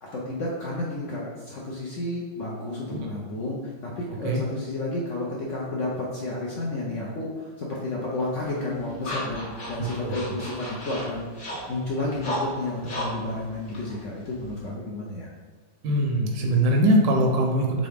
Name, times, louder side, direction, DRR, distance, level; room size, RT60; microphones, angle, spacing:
voice 1, 0.0-15.3, left 2 dB, 60° left, -4 dB, 0.8 m, -31 dB
sound 1, 8.2-14.7, equal, 35° left, 0.9 m, -36 dB
voice 2, 9.8-10.1 15.8-17.9, right 1 dB, 85° right, 1 dB, 1.5 m, -22 dB
3.8 x 3.7 x 3.5 m, 1.5 s
omnidirectional pair, 1.9 m